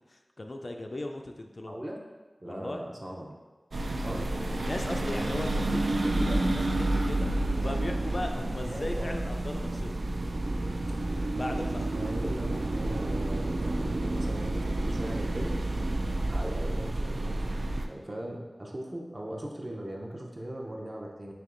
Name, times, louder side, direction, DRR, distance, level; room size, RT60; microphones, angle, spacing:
voice 1, 0.1-1.7 2.4-2.8 4.0-10.0 11.3-11.9, left 1 dB, 50° left, 3 dB, 0.3 m, -37 dB
voice 2, 1.7-2.0 2.4-3.3 4.0-4.3 8.7-9.1 11.0-11.3 11.9-12.5 12.7-15.5 16.2-17.5 17.9-21.3, right 1 dB, 35° right, -1 dB, 0.6 m, -39 dB
sound 1, 3.7-17.8, right 2 dB, 80° right, 0.3 m, -30 dB
3.4 x 2.9 x 3.8 m, 1.2 s
wide cardioid pair, 70°, 0 cm